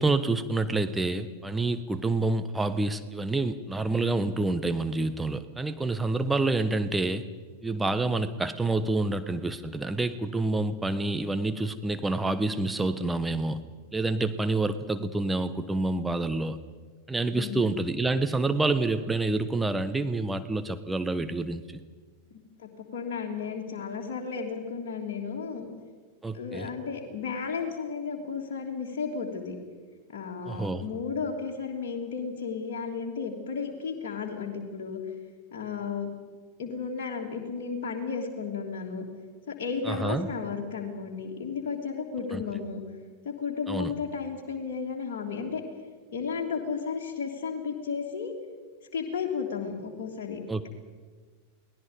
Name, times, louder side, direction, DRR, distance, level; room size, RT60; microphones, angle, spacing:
voice 1, 0.0-7.2 7.6-13.6 13.9-16.6 17.1-21.6 26.2-26.7 30.5-30.9 39.8-40.3 42.2-42.4 43.7-43.9 50.5-50.7, right 2 dB, 10° right, 10 dB, 1.2 m, -28 dB
voice 2, 17.3-17.7 22.6-25.7 26.3-29.5 30.1-35.0 35.5-36.1 36.6-39.0 39.5-42.8 43.2-45.6 46.1-48.3 48.9-50.7, left 5 dB, 50° left, -1 dB, 3.3 m, -33 dB
29.0 x 19.5 x 5.4 m, 1.5 s
figure-of-eight pair, 90°, 0 cm